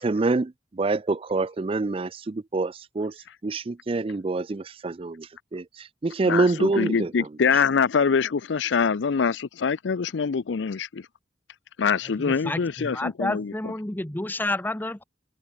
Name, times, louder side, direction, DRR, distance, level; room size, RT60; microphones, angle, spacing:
voice 1, 0.0-3.1 3.4-7.3, right 3 dB, 30° right, 0.4 m, -26 dB
voice 2, 6.2-11.0 11.8-13.5, left 6 dB, 80° left, 0.5 m, -24 dB
voice 3, 12.2-15.0, left 2 dB, 10° left, 0.7 m, -30 dB
head